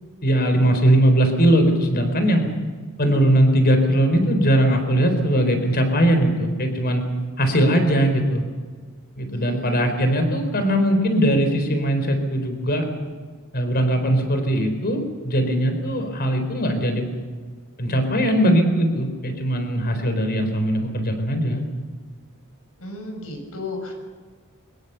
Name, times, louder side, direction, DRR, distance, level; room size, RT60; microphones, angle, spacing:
voice 1, 0.2-2.4 3.0-7.0 7.4-8.4 9.2-12.9 13.5-17.1 17.8-21.6, right 1 dB, 45° left, 6 dB, 4.1 m, -20 dB
voice 2, 9.3-9.8 22.8-23.9, left 2 dB, 75° left, 4 dB, 5.9 m, -34 dB
23.5 x 20.5 x 7.0 m, 1.5 s
head